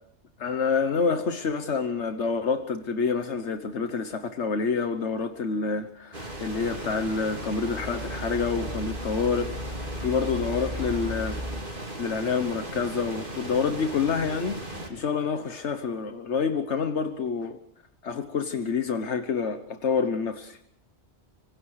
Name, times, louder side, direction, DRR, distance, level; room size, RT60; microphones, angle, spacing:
voice 1, 0.4-9.5 10.0-11.4 12.0-14.6 14.9-17.6 18.0-20.6, left 5 dB, 80° left, 1.5 m, -27 dB
sound 1, 6.1-14.9, right 1 dB, 50° right, 3.9 m, -37 dB
sound 2, 6.3-11.6, equal, ahead, 2.7 m, -38 dB
25.5 x 25.0 x 4.9 m
omnidirectional pair, 1.2 m